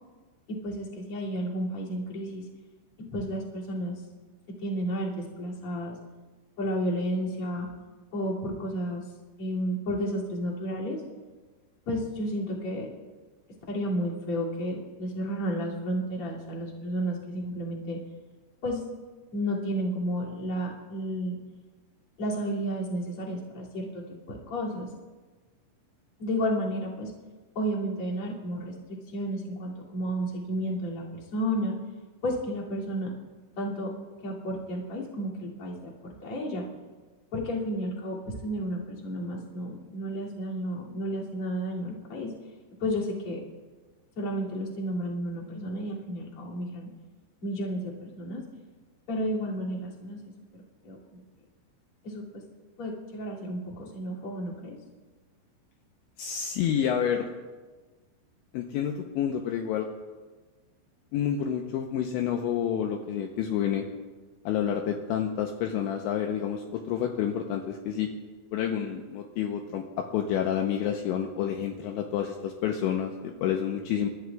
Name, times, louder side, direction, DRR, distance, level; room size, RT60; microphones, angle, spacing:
voice 1, 0.5-2.4 3.0-4.0 4.6-5.9 6.6-7.7 8.1-9.0 9.4-11.0 11.9-12.9 13.7-18.0 18.6-18.9 19.3-21.4 22.2-23.9 24.3-24.9 26.2-27.1 27.5-31.0 31.3-31.8 32.2-33.1 33.6-33.9 34.2-36.6 37.3-42.3 42.8-43.4 44.2-46.9 47.4-48.4 49.1-50.2 50.8-51.2 52.0-52.4 52.8-54.7, equal, 35° left, -4 dB, 2.6 m, -32 dB
voice 2, 56.2-57.3 58.5-59.9 61.1-63.8 64.5-68.1 68.5-69.8 70.1-74.1, left 9 dB, 80° left, 3 dB, 2.9 m, -29 dB
29.0 x 13.5 x 2.4 m, 1.3 s
omnidirectional pair, 5.8 m